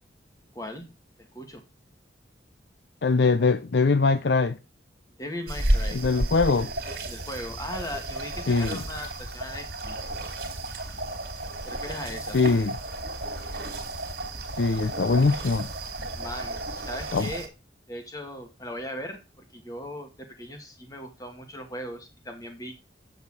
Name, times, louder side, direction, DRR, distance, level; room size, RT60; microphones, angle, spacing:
voice 1, 0.5-0.9 1.2-1.6 5.2-6.0 7.0-10.1 11.6-12.4 16.1-17.5 17.9-19.2 19.5-22.8, left 1 dB, 20° left, 1.9 m, -38 dB
voice 2, 3.0-4.6 5.9-6.7 8.5-8.8 12.3-12.7 14.6-15.7 17.1-17.3, left 4 dB, 65° left, 0.5 m, -22 dB
sound 1, 5.5-17.5, right 1 dB, 55° right, 2.6 m, -32 dB
8.2 x 6.8 x 4.8 m
head